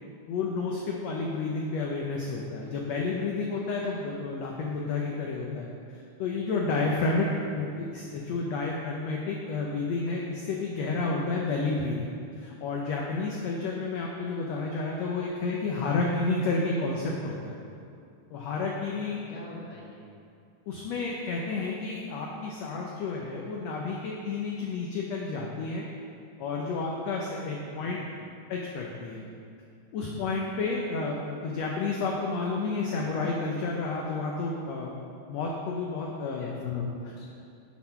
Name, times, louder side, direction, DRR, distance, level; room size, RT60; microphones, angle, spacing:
voice 1, 0.3-5.7 6.2-7.3 7.6-12.1 12.4-17.6 18.3-19.2 20.7-25.9 26.4-28.0 28.5-29.2 29.9-34.9 35.3-36.9, left 3 dB, 70° left, -1 dB, 1.7 m, -30 dB
voice 2, 19.0-20.1 27.7-28.0 36.4-36.5 37.0-37.3, left 2 dB, 30° left, -5 dB, 1.8 m, -47 dB
9.7 x 6.6 x 5.8 m, 2.4 s
omnidirectional pair, 3.8 m